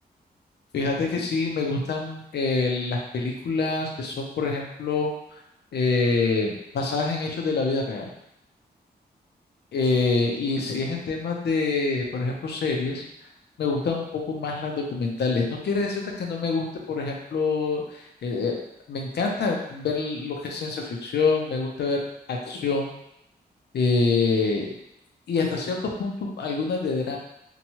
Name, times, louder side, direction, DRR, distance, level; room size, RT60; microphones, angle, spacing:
voice 1, 0.7-5.1 5.7-8.1 9.7-13.0 13.6-18.6 18.9-22.0 22.3-22.9 23.7-24.7 25.3-27.2, left 4 dB, 80° left, 0 dB, 0.6 m, -26 dB
2.9 x 2.2 x 2.9 m, 0.81 s
wide cardioid pair, 115°, 17 cm